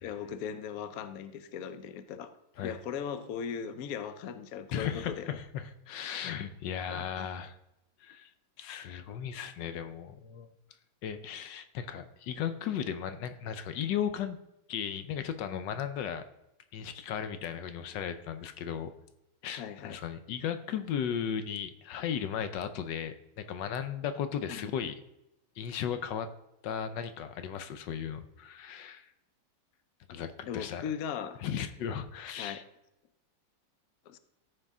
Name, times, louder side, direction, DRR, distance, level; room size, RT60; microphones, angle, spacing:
voice 1, 0.0-2.3 2.6-5.4 6.9-7.3 19.6-20.0 24.5-24.7 30.5-31.4 32.4-32.6 34.1-34.2, left 7 dB, 90° left, 11 dB, 0.7 m, -38 dB
voice 2, 4.7-7.6 8.0-8.3 8.6-10.5 11.0-14.4 14.7-16.3 16.7-18.9 19.4-25.0 25.6-26.3 26.6-29.1 30.1-30.9 31.4-32.6, left 8 dB, 70° left, 10 dB, 1.1 m, -36 dB
14.0 x 5.0 x 3.6 m, 0.86 s
omnidirectional pair, 2.4 m